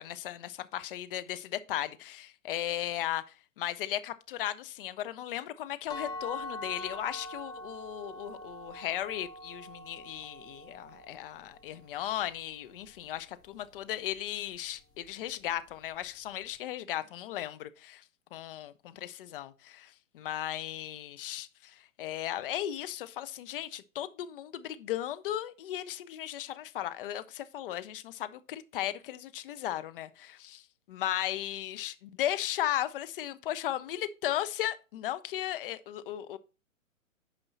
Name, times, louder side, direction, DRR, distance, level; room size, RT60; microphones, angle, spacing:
voice 1, 0.0-3.2 3.6-18.0 18.3-36.4, left 12 dB, 40° left, 0.8 m, -36 dB
sound 1, 5.9-11.7, left 1 dB, 10° left, 0.6 m, -43 dB
9.1 x 5.4 x 4.0 m
hypercardioid pair, 130°, 41 cm